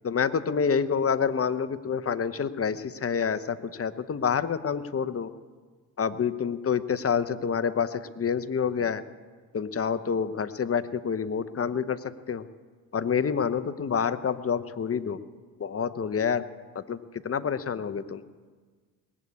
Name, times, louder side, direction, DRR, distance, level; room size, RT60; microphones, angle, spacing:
voice 1, 0.0-5.3 6.0-9.0 9.5-12.4 12.9-15.2 15.6-16.4 16.7-17.0 17.2-18.2, left 6 dB, 30° left, 13 dB, 0.9 m, -28 dB
20.0 x 8.4 x 8.5 m, 1.5 s
hypercardioid pair, 60°, 46 cm